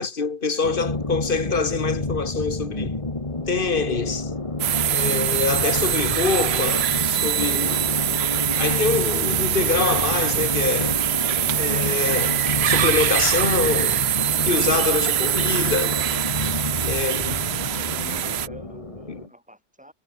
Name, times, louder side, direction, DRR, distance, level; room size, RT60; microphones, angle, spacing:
voice 1, 0.0-3.0 3.5-4.3 4.9-8.0 8.6-11.0 11.5-14.0 14.5-16.1 16.8-17.5 19.1-19.2, left 4 dB, 55° left, 1.8 m, -25 dB
sound 1, 0.6-19.3, left 2 dB, 30° left, 2.1 m, -29 dB
sound 2, 4.6-18.5, right 11 dB, 75° right, 0.9 m, -23 dB
voice 2, 17.5-19.9, equal, 5° right, 7.8 m, -46 dB
omnidirectional pair, 1.1 m